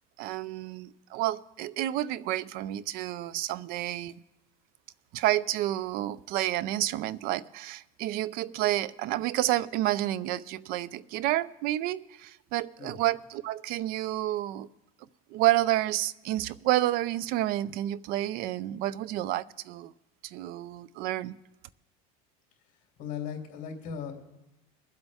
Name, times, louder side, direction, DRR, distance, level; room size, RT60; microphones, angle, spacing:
voice 1, 0.2-4.1 5.1-14.7 15.3-19.9 20.2-21.4, right 15 dB, 50° right, 0.4 m, -30 dB
voice 2, 23.0-24.1, left 7 dB, 45° left, 2.9 m, -37 dB
22.5 x 8.1 x 3.5 m
supercardioid pair, 135°, 19 cm